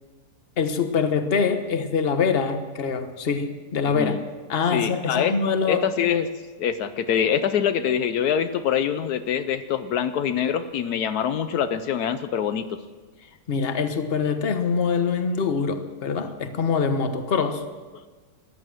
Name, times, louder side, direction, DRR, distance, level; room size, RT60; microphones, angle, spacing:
voice 1, 0.6-4.2 4.5-5.8 13.5-17.6, left 5 dB, 40° left, 8 dB, 1.3 m, -24 dB
voice 2, 4.7-5.4 5.7-6.3 6.6-12.8, left 8 dB, 75° left, 10 dB, 1.2 m, -24 dB
14.5 x 11.5 x 7.6 m, 1.3 s
omnidirectional pair, 1.7 m